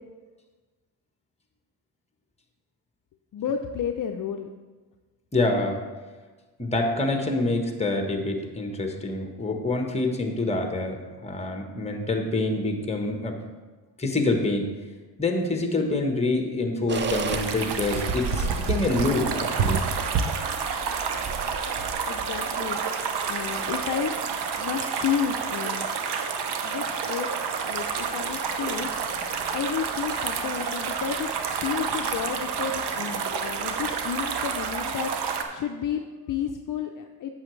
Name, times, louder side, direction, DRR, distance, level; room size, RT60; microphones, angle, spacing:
voice 1, 3.3-4.5 22.0-22.8 23.3-24.1 24.6-25.9 26.6-27.3 27.7-28.9 29.5-37.3, left 8 dB, 50° left, 5 dB, 0.5 m, -31 dB
voice 2, 5.3-5.8 6.6-13.4 14.0-14.7 15.2-19.8, left 2 dB, 15° left, 3 dB, 1.2 m, -26 dB
sound 1, 16.9-22.0, right 5 dB, 30° right, 0.5 m, -36 dB
sound 2, 16.9-35.4, right 6 dB, 70° right, 0.9 m, -29 dB
8.5 x 6.9 x 3.2 m, 1.3 s
cardioid pair, 85°, 41 cm